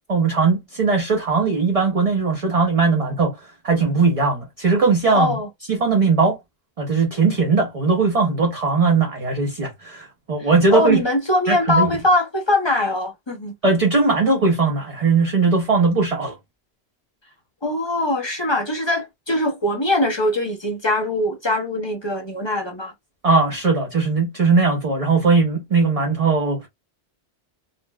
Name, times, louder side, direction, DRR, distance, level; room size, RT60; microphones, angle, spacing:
voice 1, 0.1-3.4 3.6-5.3 5.7-6.4 6.8-11.0 11.5-12.0 13.6-16.4 23.2-26.7, right 4 dB, 40° right, 0.6 m, -19 dB
voice 2, 5.1-5.5 10.4-13.5 17.6-22.9, left 1 dB, 30° left, 0.6 m, -22 dB
4.0 x 2.0 x 2.2 m
omnidirectional pair, 1.2 m